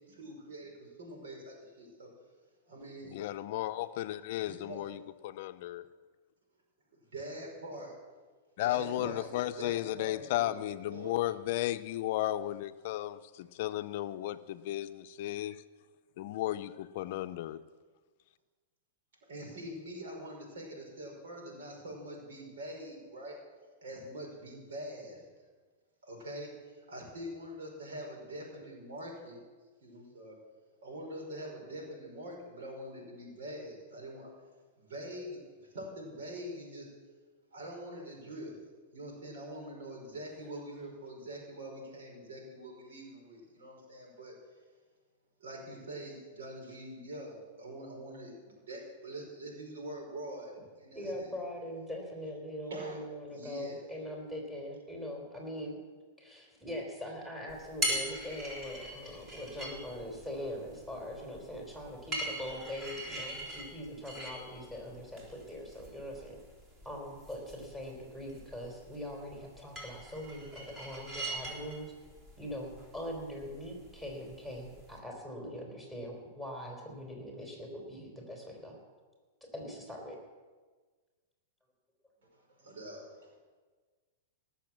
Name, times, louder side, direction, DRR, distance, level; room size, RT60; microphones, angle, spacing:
voice 1, 0.1-2.1 2.7-3.2 4.4-4.9 7.0-8.0 8.6-11.2 19.3-23.4 23.8-25.3 26.0-29.4 29.8-30.4 30.8-34.3 34.8-35.4 35.7-36.9 37.5-38.6 38.9-44.3 45.4-51.3 52.7-53.0 53.3-53.8 82.3-83.4, right 1 dB, 85° right, 5.3 m, -44 dB
voice 2, 3.1-5.8 8.6-15.6 16.2-17.6, left 14 dB, 55° left, 0.6 m, -34 dB
voice 3, 51.0-55.8 56.2-66.4 66.9-71.9 72.4-78.8 79.4-80.2, equal, 5° right, 3.7 m, -42 dB
sound 1, 57.5-75.0, right 1 dB, 25° right, 3.9 m, -42 dB
18.0 x 7.1 x 7.5 m
hypercardioid pair, 140°, 0 cm